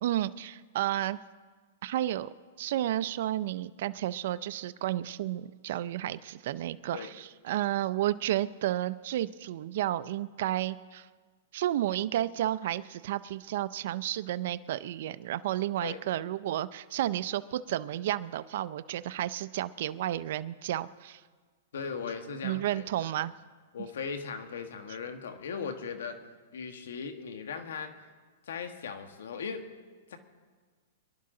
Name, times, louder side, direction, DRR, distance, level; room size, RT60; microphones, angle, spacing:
voice 1, 0.0-1.2 1.8-2.3 2.6-11.1 11.5-21.2 22.4-23.3, right 13 dB, 60° right, 13 dB, 0.5 m, -32 dB
voice 2, 21.7-23.1 23.7-26.2 26.5-27.9 28.4-29.7 30.1-30.2, left 6 dB, 80° left, 7 dB, 1.5 m, -38 dB
23.0 x 11.5 x 3.8 m, 1.5 s
hypercardioid pair, 150°, 0 cm